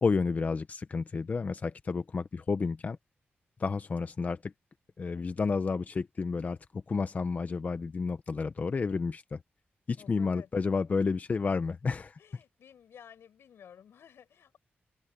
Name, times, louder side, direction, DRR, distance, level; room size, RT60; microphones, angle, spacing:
voice 1, 0.0-3.0 3.6-4.5 5.0-9.4 9.9-12.2, left 4 dB, 40° left, 0.7 m, -31 dB
voice 2, 10.0-10.5 12.2-14.6, left 8 dB, 90° left, 6.3 m, -54 dB
wide cardioid pair, 105°, 4 cm